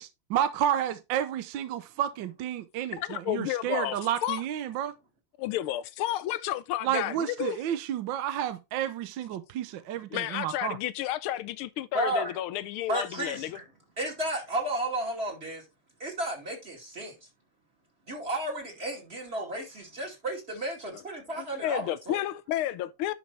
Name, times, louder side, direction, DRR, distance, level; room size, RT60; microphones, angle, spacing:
voice 1, 0.0-4.9 6.8-10.8, right 10 dB, 70° right, 1.4 m, -31 dB
voice 2, 2.9-4.4 5.4-7.6 10.1-13.6 20.9-21.0 21.4-23.1, left 13 dB, 85° left, 1.5 m, -31 dB
voice 3, 11.9-12.3 12.9-13.6 14.0-15.6 16.0-17.1 18.1-22.2, right 1 dB, 30° right, 2.8 m, -33 dB
11.0 x 5.4 x 3.3 m
omnidirectional pair, 2.4 m